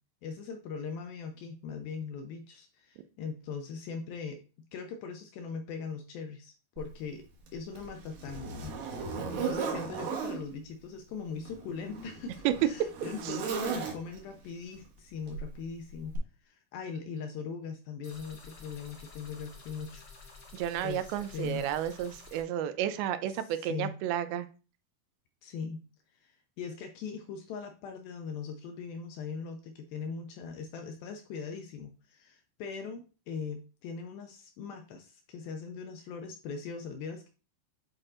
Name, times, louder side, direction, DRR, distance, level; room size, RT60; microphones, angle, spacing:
voice 1, 0.2-4.4 4.7-7.3 7.5-20.1 20.8-21.7 23.3-23.9 25.4-25.9 26.1-37.3, left 5 dB, 80° left, 5 dB, 2.1 m, -40 dB
Zipper (clothing), 6.8-6.9 7.5-10.4 11.4-14.3 15.3-15.5 16.1-16.2, right 5 dB, 65° right, 2.6 m, -36 dB
sound 1, 18.0-22.4, left 4 dB, 55° left, 1.2 m, -51 dB
voice 2, 20.5-24.5, right 11 dB, 80° right, 11 dB, 2.2 m, -32 dB
8.8 x 4.4 x 2.4 m, 0.34 s
omnidirectional pair, 4.7 m